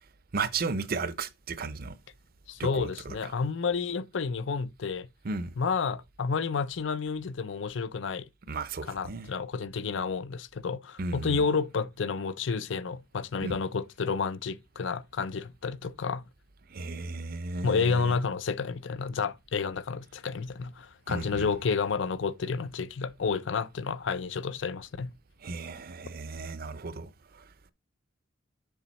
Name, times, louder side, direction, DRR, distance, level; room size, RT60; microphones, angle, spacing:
voice 1, 0.3-2.0 2.6-3.3 5.2-5.5 8.5-9.3 11.0-11.4 13.4-13.6 16.7-18.2 21.1-21.5 25.4-27.5, right 4 dB, 50° right, 0.6 m, -35 dB
voice 2, 2.5-5.1 5.6-8.2 8.9-16.2 17.6-25.1, left 5 dB, 70° left, 0.5 m, -30 dB
7.1 x 4.8 x 4.1 m
head